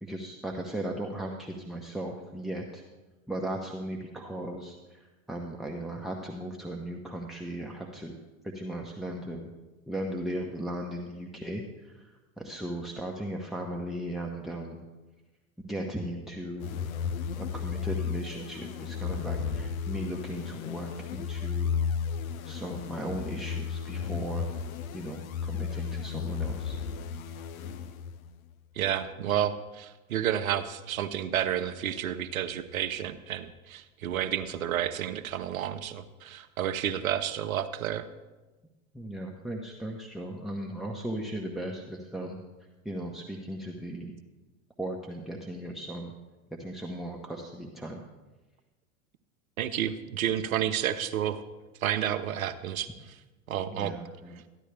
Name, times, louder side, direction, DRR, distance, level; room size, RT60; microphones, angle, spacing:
voice 1, 0.0-2.8 3.3-8.1 8.5-9.5 9.9-12.1 12.4-14.8 15.6-16.8 17.4-21.7 22.4-24.5 24.9-26.8 38.9-42.4 42.8-44.1 44.8-46.1 46.6-48.0 53.7-54.4, right 1 dB, ahead, 1 dB, 1.0 m, -37 dB
sound 1, 16.6-28.4, left 6 dB, 85° left, 0.7 m, -34 dB
voice 2, 28.8-38.1 49.6-51.4 51.8-53.2 53.5-53.9, right 10 dB, 85° right, 11 dB, 0.8 m, -30 dB
14.0 x 10.0 x 3.4 m, 1.2 s
hypercardioid pair, 90°, 41 cm